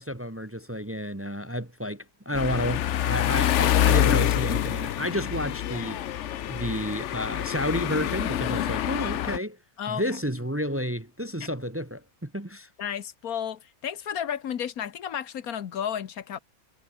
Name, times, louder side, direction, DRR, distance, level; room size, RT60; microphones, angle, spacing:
voice 1, 0.0-6.0 6.4-9.6 9.9-12.7, equal, 10° right, 1.0 m, -31 dB
sound 1, 2.3-9.4, left 11 dB, 60° left, 0.9 m, -26 dB
voice 2, 12.8-16.4, left 9 dB, 80° left, 1.5 m, -32 dB
omnidirectional pair, 1.5 m